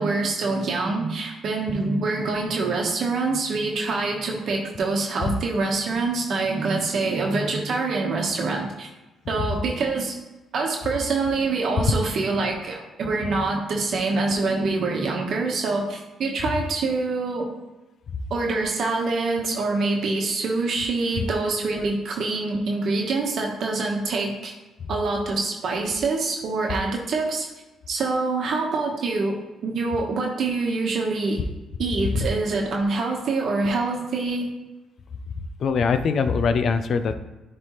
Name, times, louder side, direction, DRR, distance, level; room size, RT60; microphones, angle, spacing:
voice 1, 0.0-8.9 9.3-10.2 10.5-17.5 18.3-24.5 24.9-27.5 27.9-31.4 31.8-34.5, right 3 dB, 60° right, 0 dB, 1.1 m, -25 dB
voice 2, 35.6-37.2, left 5 dB, 60° left, 10 dB, 0.5 m, -22 dB
9.5 x 3.3 x 3.0 m, 1.1 s
cardioid pair, 90°, 0 cm